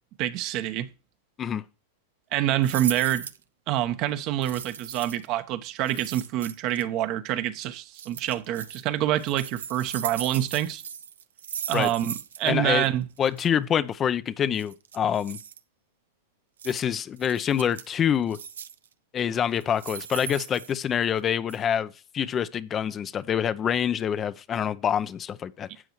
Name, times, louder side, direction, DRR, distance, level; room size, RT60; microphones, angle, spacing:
voice 1, 0.2-0.9 2.3-3.3 3.7-10.8 11.7-13.1, right 12 dB, 45° right, 1.1 m, -26 dB
sound 1, 2.6-3.4 4.4-5.3 5.8-6.8 7.9-8.8 9.2-12.5 12.8-12.9 13.2-13.5 14.5-15.6 16.6-16.8 17.2-17.9 18.3-18.9 19.5-21.2 21.5-21.6, right 8 dB, 85° right, 0.7 m, -38 dB
voice 2, 12.4-12.9 13.2-15.4 16.6-18.4 19.1-25.7, left 8 dB, 30° left, 0.6 m, -26 dB
12.0 x 8.1 x 3.1 m
hypercardioid pair, 115°, 0 cm